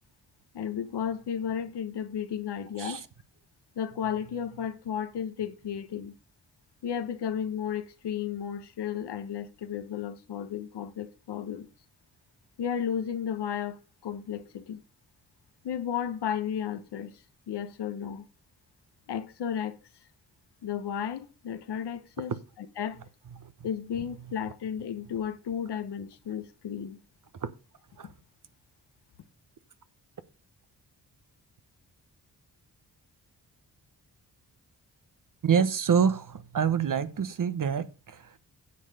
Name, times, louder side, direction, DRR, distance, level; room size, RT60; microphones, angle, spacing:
voice 1, 0.5-3.0 3.8-6.1 6.8-11.7 12.6-14.8 15.6-17.1 17.5-18.3 19.1-19.8 20.6-23.0 23.6-27.0, left 8 dB, 80° left, 1.1 m, -33 dB
voice 2, 35.4-38.4, right 7 dB, 50° right, 1.1 m, -27 dB
9.7 x 6.6 x 4.9 m
cardioid pair, 60°, 40 cm